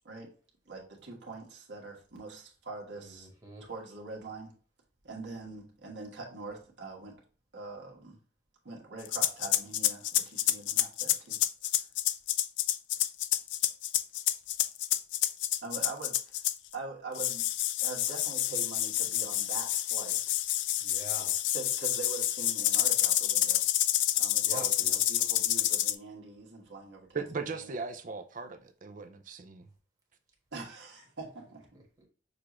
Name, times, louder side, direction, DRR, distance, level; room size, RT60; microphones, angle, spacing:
voice 1, 0.7-3.3 3.6-4.5 5.0-7.2 7.5-8.2 8.6-11.4 15.6-16.2 16.7-17.5 17.8-20.3 21.5-23.6 24.1-27.7 30.5-31.7, right 3 dB, 75° right, 1.5 m, -43 dB
voice 2, 3.0-3.6 20.8-21.4 24.4-25.0 31.7-32.1, right 1 dB, 20° right, 1.4 m, -47 dB
sound 1, 9.1-16.7 17.1-25.9, left 13 dB, 80° left, 0.3 m, -28 dB
voice 3, 27.1-29.6, right 4 dB, 45° right, 0.5 m, -38 dB
6.5 x 2.5 x 3.0 m
head